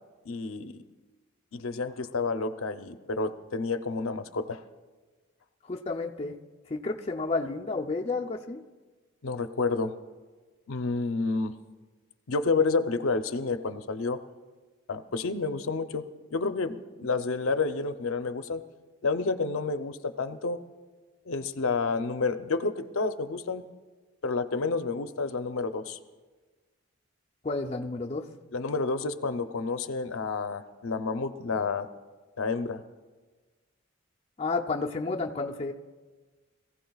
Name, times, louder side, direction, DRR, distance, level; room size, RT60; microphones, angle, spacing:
voice 1, 0.3-0.7 1.5-4.6 9.2-9.9 10.7-11.6 12.3-14.2 14.9-16.0 16.3-18.6 19.0-20.6 21.3-23.6 24.2-26.0 28.5-31.9 32.4-32.8, left 4 dB, 75° left, 9 dB, 0.6 m, -29 dB
voice 2, 5.6-6.4 6.7-8.6 27.4-28.2 34.4-35.7, left 3 dB, 30° left, 1 dB, 0.5 m, -31 dB
22.0 x 15.0 x 2.3 m, 1.3 s
head